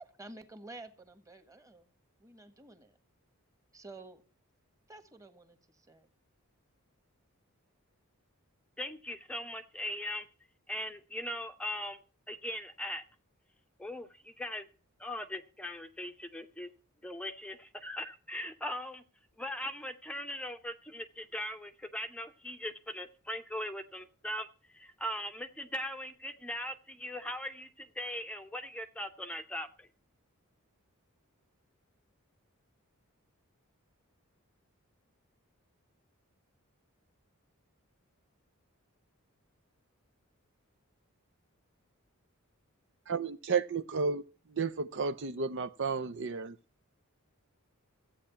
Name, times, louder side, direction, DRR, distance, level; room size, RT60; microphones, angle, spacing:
voice 1, 0.2-1.8 2.2-2.9 3.7-4.2 4.9-5.6 5.9-6.0, right 2 dB, 15° right, 8 dB, 1.4 m, -50 dB
voice 2, 8.8-10.2 10.7-12.0 12.3-13.0 13.8-14.7 15.0-16.7 17.0-19.0 19.4-24.5 24.7-29.9, left 1 dB, 5° left, 7 dB, 0.7 m, -39 dB
voice 3, 43.1-44.2 44.5-46.6, right 5 dB, 55° right, 11 dB, 0.6 m, -32 dB
14.5 x 8.8 x 5.7 m, 0.36 s
head